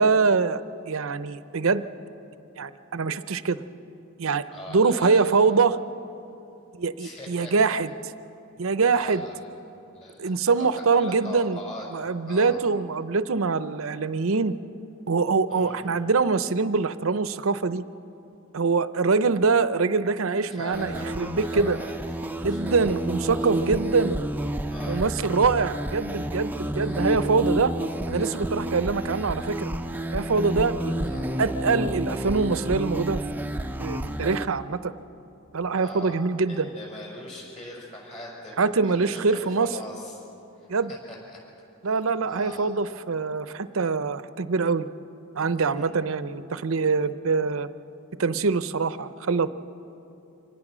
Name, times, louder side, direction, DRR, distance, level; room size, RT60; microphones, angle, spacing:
voice 1, 0.0-1.8 2.6-3.6 4.2-4.4 4.7-5.8 6.8-7.9 8.6-9.2 10.2-11.6 11.9-14.5 15.1-17.8 18.5-21.8 22.4-24.2 24.8-27.7 28.1-29.7 30.1-33.2 33.8-34.9 35.5-36.7 38.6-39.8 40.7-40.9 41.8-44.9 45.4-47.7 48.2-49.5, right 4 dB, 70° right, 13 dB, 0.7 m, -24 dB
voice 2, 4.5-5.3 7.0-7.8 8.9-9.5 9.9-10.6 10.9-11.9 12.3-12.6 15.5-15.9 20.5-23.5 23.8-24.0 24.7-25.0 26.7-27.1 31.0-31.4 35.7-40.2 40.6-41.4 41.8-42.0 42.3-42.7 45.6-46.0, left 1 dB, 35° left, -3 dB, 5.7 m, -42 dB
sound 1, 20.7-34.4, right 1 dB, 10° right, 0.6 m, -30 dB
25.0 x 19.0 x 6.2 m, 2.8 s
head